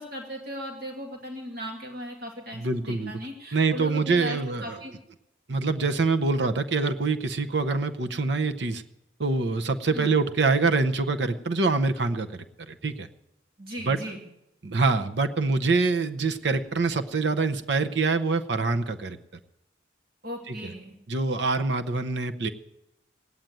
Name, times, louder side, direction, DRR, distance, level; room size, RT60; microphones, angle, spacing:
voice 1, 0.0-4.9 9.9-10.1 13.6-14.2 20.2-20.9, equal, 50° right, 1 dB, 2.1 m, -37 dB
voice 2, 2.5-3.1 3.5-4.8 5.5-8.8 9.2-13.1 13.9-14.0 14.6-19.2 20.5-20.7 21.1-22.5, right 3 dB, 70° right, 8 dB, 0.8 m, -25 dB
17.5 x 9.0 x 9.2 m, 0.89 s
head